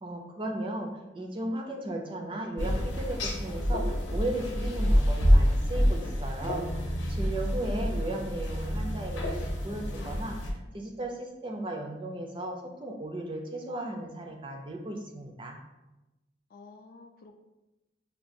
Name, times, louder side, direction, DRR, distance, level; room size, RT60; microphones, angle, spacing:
voice 1, 0.0-6.7 7.1-15.6, right 1 dB, 25° right, 2 dB, 0.4 m, -36 dB
sound 1, 2.6-10.5, equal, 75° left, 0.8 m, -27 dB
voice 2, 7.4-7.7 16.5-17.4, left 3 dB, 45° left, 5 dB, 0.3 m, -51 dB
5.7 x 2.3 x 2.6 m, 1.0 s
head